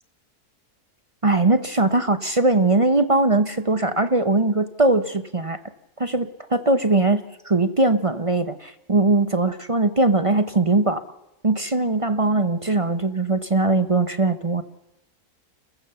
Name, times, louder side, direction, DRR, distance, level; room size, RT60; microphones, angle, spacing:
voice 1, 1.2-5.6 6.0-11.0 11.4-14.6, right 2 dB, 30° right, 10 dB, 0.6 m, -20 dB
29.0 x 15.0 x 6.8 m, 0.97 s
omnidirectional pair, 1.7 m